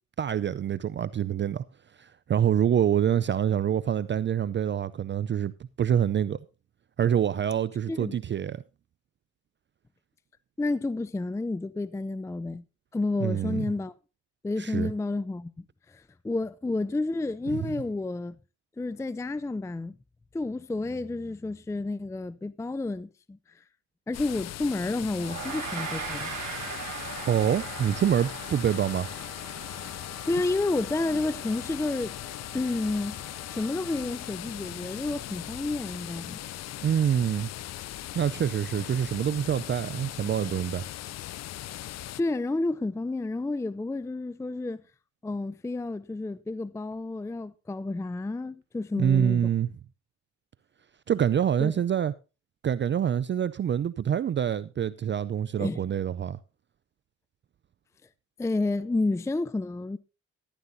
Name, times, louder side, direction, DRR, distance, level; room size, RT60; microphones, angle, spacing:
voice 1, 0.2-1.6 2.0-5.5 5.8-6.4 7.0-8.6 13.2-13.7 14.6-14.9 17.5-17.7 27.3-29.1 36.8-37.5 38.1-40.8 49.0-49.7 51.1-52.1 52.6-56.4, right 9 dB, 40° right, 0.5 m, -26 dB
voice 2, 10.6-12.6 12.9-13.9 14.4-18.4 18.8-20.0 20.3-23.6 24.1-26.3 29.9-32.2 32.5-36.4 42.2-44.8 45.2-49.5 51.6-51.7 55.6-55.8 58.4-60.0, left 2 dB, 10° left, 0.5 m, -30 dB
sound 1, 24.1-42.2, left 14 dB, 60° left, 0.5 m, -39 dB
Gong, 25.2-34.7, right 6 dB, 70° right, 4.0 m, -41 dB
sound 2, 26.9-34.4, left 5 dB, 85° left, 5.2 m, -49 dB
13.5 x 13.0 x 2.7 m
cardioid pair, 90°, 30 cm